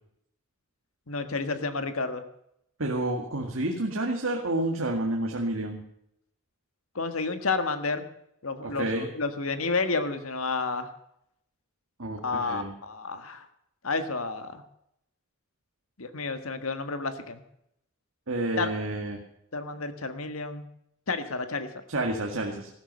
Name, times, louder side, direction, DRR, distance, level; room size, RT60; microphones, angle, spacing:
voice 1, 1.1-2.2 7.0-8.1 8.4-10.9 12.2-13.5 13.8-14.6 16.0-17.4 18.6-18.7 19.5-20.6 21.1-21.7, left 3 dB, 85° left, 9 dB, 1.7 m, -30 dB
voice 2, 2.8-5.8 8.6-9.1 12.0-12.7 18.3-19.2 21.9-22.7, right 1 dB, 75° right, 1 dB, 1.9 m, -29 dB
15.5 x 13.0 x 5.5 m, 0.76 s
head